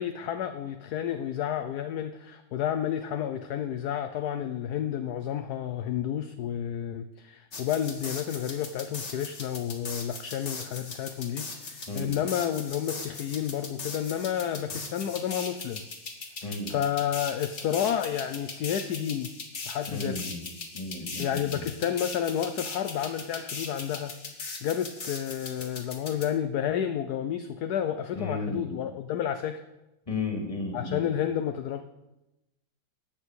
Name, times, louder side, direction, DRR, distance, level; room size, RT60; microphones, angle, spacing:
voice 1, 0.0-15.9 16.7-19.3 19.7-20.2 21.2-24.1 24.6-29.6 30.7-31.8, left 9 dB, 65° left, 9 dB, 1.0 m, -30 dB
sound 1, 7.5-26.3, left 3 dB, 35° left, 1.9 m, -39 dB
voice 2, 16.4-16.7 19.9-20.4 20.7-21.7 28.2-28.7 30.1-31.1, left 2 dB, 15° left, 2 dB, 2.6 m, -34 dB
12.0 x 8.8 x 8.1 m, 0.97 s
omnidirectional pair, 2.2 m